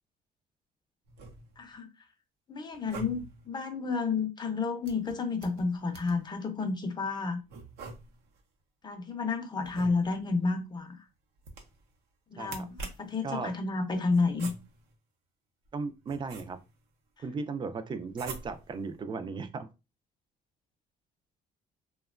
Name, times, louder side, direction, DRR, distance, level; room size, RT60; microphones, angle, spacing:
sound 1, 1.0-1.7 2.7-3.5 4.8-6.3 7.5-8.4 9.6-10.4 11.4-11.9 12.4-13.2 14.1-14.9 15.7-16.8 18.1-18.8, right 3 dB, 80° right, 0.7 m, -45 dB
voice 1, 1.6-1.9 2.5-7.4 8.8-11.0 12.3-14.5, left 4 dB, 25° left, 0.5 m, -31 dB
voice 2, 12.4-12.7 13.2-13.5 15.7-16.6 17.2-19.7, right 4 dB, 30° right, 0.3 m, -36 dB
2.8 x 2.2 x 2.3 m
cardioid pair, 110°, 17 cm